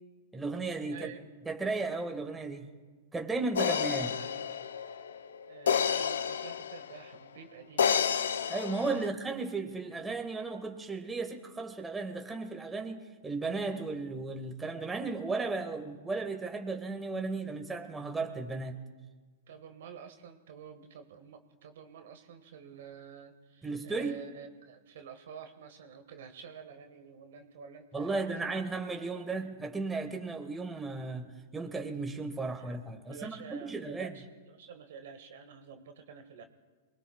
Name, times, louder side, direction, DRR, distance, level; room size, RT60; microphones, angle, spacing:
voice 1, 0.3-1.1 1.5-2.7 3.1-4.2 8.5-18.8 23.6-24.1 27.9-34.2, right 3 dB, 10° right, 4 dB, 1.7 m, -35 dB
voice 2, 0.9-1.2 5.5-8.0 8.9-9.1 19.5-28.5 29.2-29.3 32.6-32.8 33.1-36.4, right 7 dB, 60° right, 6 dB, 1.6 m, -49 dB
sound 1, 3.6-7.1 7.8-9.1, left 7 dB, 70° left, 0.7 m, -30 dB
28.0 x 20.5 x 2.3 m, 1.4 s
figure-of-eight pair, 100°, 0 cm